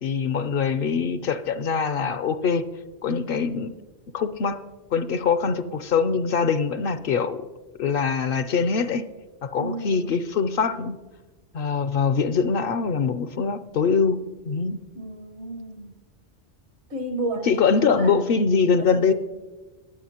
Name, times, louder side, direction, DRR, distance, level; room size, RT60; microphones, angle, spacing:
voice 1, 0.0-2.6 3.0-3.7 4.1-4.6 4.9-7.4 7.8-9.1 9.4-11.0 11.5-14.2 14.4-14.8 17.5-19.1, left 5 dB, 65° left, 12 dB, 0.7 m, -23 dB
voice 2, 9.6-10.2 14.9-16.0 16.9-18.3 18.8-19.1, right 2 dB, 75° right, 4 dB, 1.7 m, -33 dB
21.0 x 7.9 x 2.9 m, 1.2 s
omnidirectional pair, 1.1 m